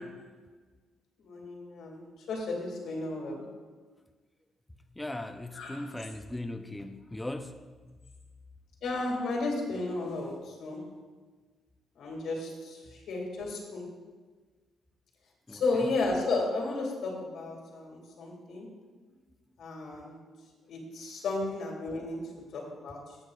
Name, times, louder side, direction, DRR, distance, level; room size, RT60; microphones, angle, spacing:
voice 1, 1.2-3.4 5.5-5.8 8.8-10.9 12.0-13.9 15.5-18.7 19.6-20.2 20.7-23.2, left 3 dB, 75° left, 0 dB, 2.0 m, -33 dB
voice 2, 5.0-7.6 7.8-7.9 15.5-15.6, left 1 dB, 10° left, 6 dB, 0.4 m, -38 dB
14.5 x 6.5 x 2.3 m, 1.4 s
cardioid pair, 90°, 0 cm